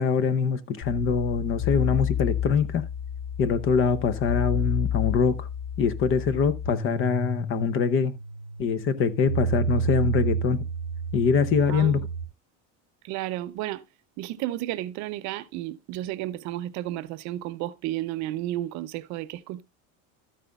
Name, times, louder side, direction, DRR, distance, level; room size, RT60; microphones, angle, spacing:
voice 1, 0.0-2.8 3.4-5.5 5.8-8.1 8.6-10.6 11.1-12.0, left 6 dB, 35° left, 0.6 m, -24 dB
sound 1, 0.8-12.2, left 2 dB, 65° left, 1.8 m, -30 dB
voice 2, 11.7-12.1 13.0-13.8 14.2-19.6, right 15 dB, 50° right, 0.5 m, -32 dB
12.5 x 8.9 x 2.3 m
cardioid pair, 160°, 37 cm